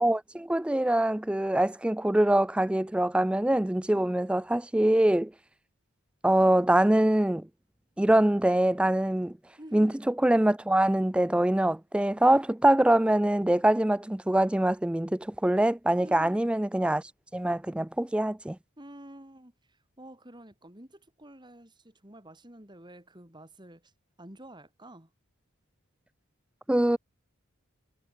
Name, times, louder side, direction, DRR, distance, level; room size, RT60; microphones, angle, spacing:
voice 1, 0.0-5.3 6.2-7.5 8.0-9.3 9.7-17.0 17.3-18.6 26.7-27.0, right 1 dB, 5° right, 0.3 m, -24 dB
voice 2, 3.9-4.2 9.6-10.0 16.0-16.4 18.8-23.9 24.2-25.1, right 1 dB, 20° right, 4.0 m, -49 dB
head